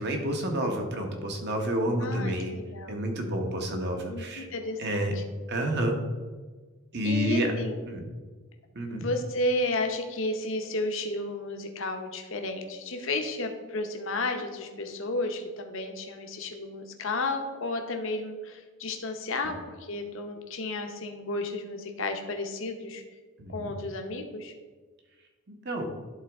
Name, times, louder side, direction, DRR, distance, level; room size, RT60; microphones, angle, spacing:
voice 1, 0.0-2.5 2.9-4.5 4.8-5.1 5.5-6.0 6.9-7.5 7.8-8.0 8.7-9.0 23.4-23.7 25.6-25.9, right 1 dB, 50° right, 3 dB, 1.1 m, -29 dB
voice 2, 2.0-3.0 4.1-5.2 7.0-7.8 8.9-23.0 23.5-24.5, left 2 dB, 60° left, 5 dB, 0.8 m, -32 dB
11.0 x 4.0 x 3.5 m, 1.4 s
head